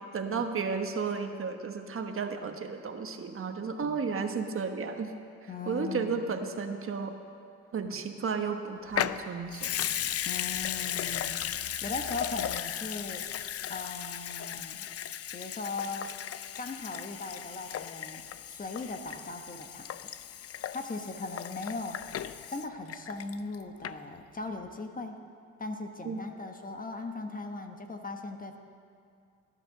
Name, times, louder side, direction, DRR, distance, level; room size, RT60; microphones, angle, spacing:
voice 1, 0.1-5.1 5.4-7.2 7.7-9.7 26.0-26.2, right 5 dB, 45° right, 5 dB, 1.3 m, -33 dB
voice 2, 5.5-6.3 10.2-13.2 13.7-14.9 15.3-16.1 16.6-18.2 18.5-20.1 20.7-22.0 22.5-25.2 25.6-28.6, left 3 dB, 30° left, 5 dB, 1.2 m, -39 dB
Water tap faucet / Sink (filling or washing) / Liquid, 8.9-23.6 23.8-23.9, left 10 dB, 50° left, 0.5 m, -36 dB
17.0 x 11.0 x 6.6 m, 2.4 s
cardioid pair, 90°, 30 cm